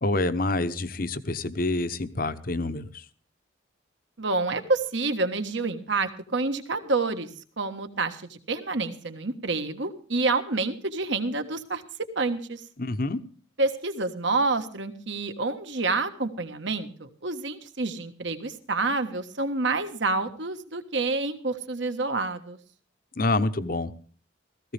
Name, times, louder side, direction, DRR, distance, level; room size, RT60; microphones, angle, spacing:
voice 1, 0.0-3.0 12.8-13.2 23.2-23.9, left 2 dB, 45° left, 12 dB, 0.9 m, -27 dB
voice 2, 4.2-7.3 7.6-11.8 12.1-12.6 13.6-22.6, right 3 dB, 65° right, 8 dB, 1.5 m, -28 dB
17.0 x 15.5 x 3.4 m, 0.43 s
head